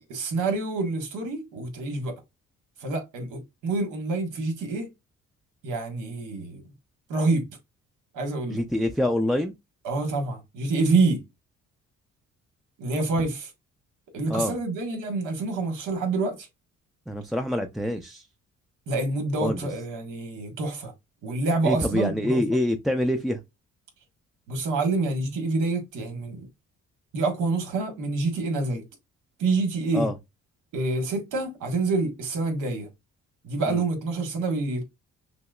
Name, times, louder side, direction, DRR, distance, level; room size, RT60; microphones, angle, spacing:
voice 1, 0.0-2.1 2.8-4.9 5.6-6.6 7.1-7.5 8.1-8.6 9.8-11.2 12.8-13.5 14.1-16.5 18.9-20.9 21.2-22.4 24.5-26.5 27.1-28.8 29.4-30.1 30.7-32.9 33.4-34.8, right 3 dB, 90° right, 1.4 m, -27 dB
voice 2, 8.5-9.6 14.3-14.6 17.1-18.3 19.4-19.6 21.6-23.4 29.9-30.1 33.7-33.8, left 1 dB, ahead, 0.4 m, -26 dB
5.9 x 2.0 x 2.3 m
cardioid pair, 90°, 30 cm